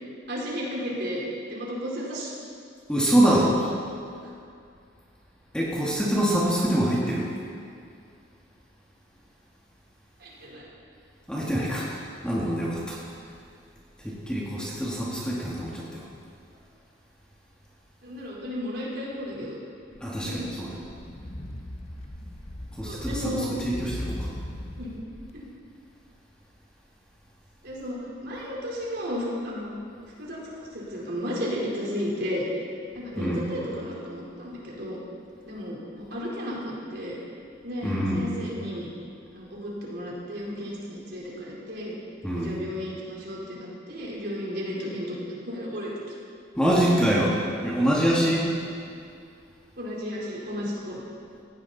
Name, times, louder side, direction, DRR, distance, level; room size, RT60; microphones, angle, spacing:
voice 1, 0.3-1.2 1.5-2.3 10.2-10.7 18.0-19.6 20.2-20.4 22.8-23.5 24.8-24.9 25.3-25.4 27.6-29.7 30.2-32.4 32.9-35.0 35.5-37.2 37.6-38.9 39.3-41.9 42.3-45.9 49.8-51.0, equal, 55° right, -5 dB, 4.3 m, -33 dB
voice 2, 2.9-3.7 5.5-7.3 11.3-12.0 12.2-13.0 14.0-16.1 20.0-20.7 22.8-24.3 33.1-33.5 37.8-38.2 42.2-42.5 46.6-48.5, equal, 5° left, -6 dB, 2.1 m, -25 dB
sound 1, 19.9-25.3, left 1 dB, 35° left, 1.0 m, -38 dB
18.5 x 15.0 x 4.3 m, 2.3 s
head